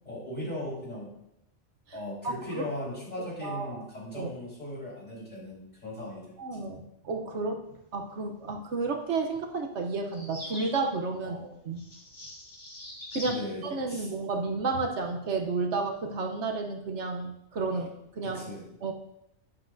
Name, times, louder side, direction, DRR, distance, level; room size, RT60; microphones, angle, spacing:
voice 1, 0.0-1.1 1.9-6.6 11.2-11.5 13.2-14.1 18.2-18.7, left 1 dB, 35° left, -5 dB, 4.4 m, -38 dB
voice 2, 2.2-2.7 3.4-3.8 4.1-4.3 6.4-7.6 7.9-11.4 11.7-11.8 13.1-13.3 13.6-18.4 18.8-18.9, right 3 dB, 70° right, 4 dB, 1.2 m, -31 dB
sound 1, 10.1-10.8 11.8-13.4, left 1 dB, 85° left, 3.2 m, -42 dB
11.5 x 10.0 x 2.6 m, 0.80 s
omnidirectional pair, 1.2 m